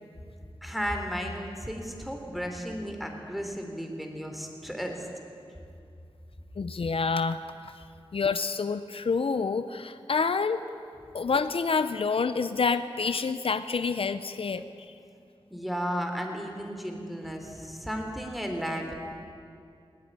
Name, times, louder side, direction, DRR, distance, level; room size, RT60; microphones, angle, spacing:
voice 1, 0.6-5.1 15.5-18.9, equal, ahead, 3 dB, 3.6 m, -34 dB
voice 2, 6.6-7.8 8.1-10.6 11.1-14.9, left 5 dB, 70° left, 11 dB, 0.8 m, -28 dB
19.5 x 18.5 x 9.8 m, 2.5 s
wide cardioid pair, 80°, 10 cm